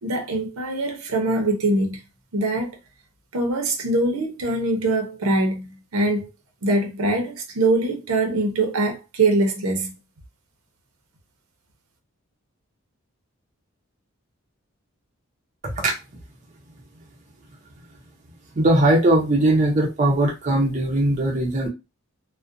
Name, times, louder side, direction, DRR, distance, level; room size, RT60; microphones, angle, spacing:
voice 1, 0.0-2.0 2.3-2.7 3.3-6.3 6.6-10.0, right 2 dB, 85° right, 0.7 m, -23 dB
voice 2, 18.5-21.7, right 1 dB, 35° right, 0.5 m, -19 dB
2.4 x 2.1 x 2.5 m
head